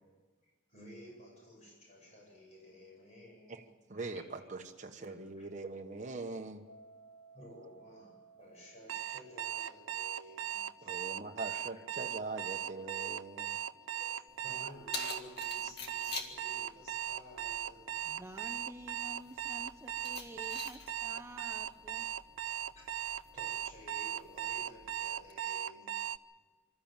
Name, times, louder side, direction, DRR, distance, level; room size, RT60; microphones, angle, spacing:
voice 1, 0.4-3.7 7.3-11.0 11.5-11.6 13.8-18.0 22.0-22.1 22.7-26.0, equal, 35° left, -1 dB, 8.0 m, -54 dB
voice 2, 3.9-6.6 10.8-13.6, right 3 dB, 35° right, 2 dB, 1.1 m, -42 dB
sound 1, 6.7-17.6, right 4 dB, 85° left, 5.2 m, -63 dB
Alarm, 8.9-26.2, right 10 dB, 75° right, 0.5 m, -38 dB
Keys jangling, 14.3-25.3, left 4 dB, 50° left, 2.0 m, -49 dB
voice 3, 18.1-22.1, right 1 dB, 15° right, 4 dB, 0.7 m, -50 dB
25.5 x 13.5 x 9.0 m, 1.5 s
head